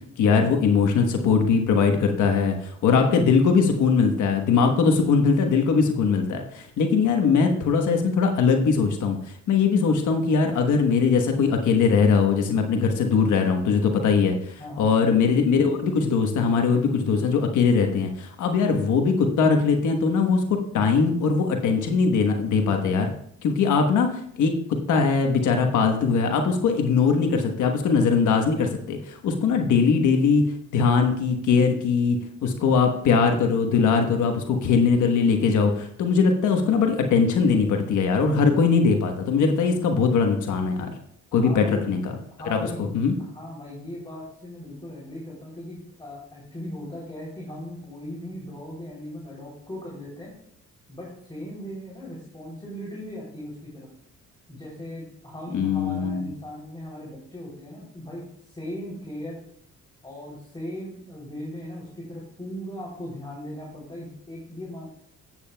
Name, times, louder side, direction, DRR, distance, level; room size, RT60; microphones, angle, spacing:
voice 1, 0.2-23.1 23.4-24.5 24.9-30.4 30.7-40.9 41.3-42.1 42.5-42.6 42.9-43.1 55.5-56.3, left 5 dB, 75° left, 4 dB, 1.2 m, -21 dB
voice 2, 14.6-15.0 41.3-41.9 42.4-42.9 43.3-50.3 50.9-53.9 54.5-59.4 60.0-64.9, equal, 15° left, -4 dB, 3.3 m, -38 dB
13.0 x 8.8 x 2.3 m, 0.67 s
cardioid pair, 90°, 30 cm